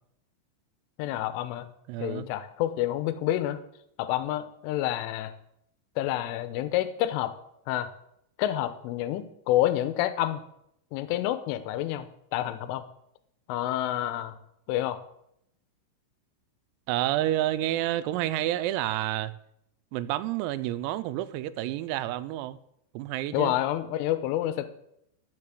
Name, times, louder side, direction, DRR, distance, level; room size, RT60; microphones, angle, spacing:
voice 1, 1.0-1.7 2.0-3.6 4.0-5.3 6.0-7.3 7.7-7.9 8.4-10.4 10.9-12.8 13.5-14.4 14.7-15.0 23.3-24.7, left 13 dB, 80° left, 3.2 m, -28 dB
voice 2, 1.9-2.3 16.9-19.3 19.9-22.6 22.9-23.6, right 14 dB, 90° right, 3.4 m, -29 dB
12.5 x 7.3 x 7.6 m
omnidirectional pair, 6.0 m